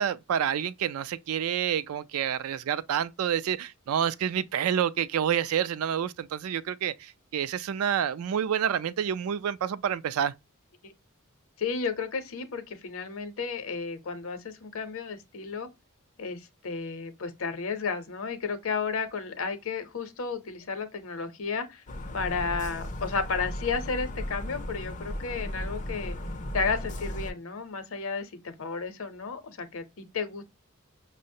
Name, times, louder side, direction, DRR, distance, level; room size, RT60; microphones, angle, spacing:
voice 1, 0.0-10.3, right 9 dB, 75° right, 0.3 m, -28 dB
voice 2, 11.6-15.7 16.2-21.8 22.1-26.2 26.5-30.4, left 5 dB, 65° left, 0.7 m, -33 dB
sound 1, 21.9-27.3, left 1 dB, 35° left, 0.4 m, -36 dB
5.5 x 2.1 x 2.6 m
head